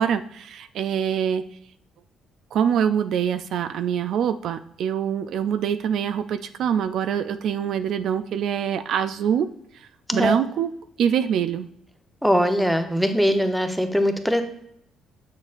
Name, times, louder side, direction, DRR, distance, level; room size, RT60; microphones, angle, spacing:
voice 1, 0.0-1.4 2.5-9.5 9.7-10.7 11.0-11.7, right 8 dB, 70° right, 10 dB, 0.3 m, -24 dB
voice 2, 12.2-14.4, equal, ahead, 6 dB, 0.9 m, -21 dB
6.9 x 6.4 x 2.5 m, 0.74 s
supercardioid pair, 70°, 0 cm